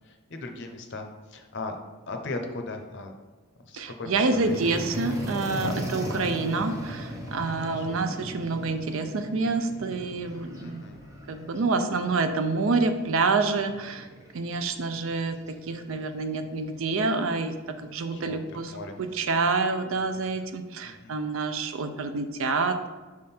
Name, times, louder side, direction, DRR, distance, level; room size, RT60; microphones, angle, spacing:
voice 1, 0.1-1.8 2.1-3.1 3.6-4.6 5.6-6.0 7.8-8.0 10.6-11.0 18.1-18.4 18.7-19.2 20.8-21.1, left 2 dB, 50° left, 4 dB, 0.7 m, -38 dB
voice 2, 3.7-10.8 11.3-14.1 14.3-15.4 15.7-17.5 17.8-22.9, right 3 dB, 60° right, 8 dB, 0.5 m, -27 dB
sound 1, 4.4-20.5, left 1 dB, 15° right, 0.8 m, -40 dB
6.2 x 3.6 x 4.3 m, 1.3 s
head